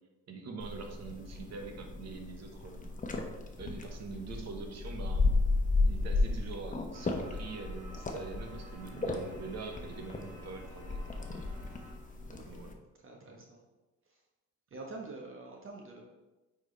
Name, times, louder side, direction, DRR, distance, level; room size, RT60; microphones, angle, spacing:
voice 1, 0.3-2.9 3.6-5.2 5.9-11.2 12.3-12.7 13.2-13.4, right 4 dB, 60° right, 4 dB, 1.3 m, -44 dB
sound 1, 0.6-12.7, left 3 dB, 25° left, 1.0 m, -34 dB
sound 2, 6.9-11.9, equal, 25° right, 1.9 m, -54 dB
voice 2, 13.0-13.6 14.0-14.2 14.7-16.0, right 3 dB, 45° right, 0 dB, 1.2 m, -46 dB
8.9 x 4.6 x 3.3 m, 1.1 s
cardioid pair, 90°, 30 cm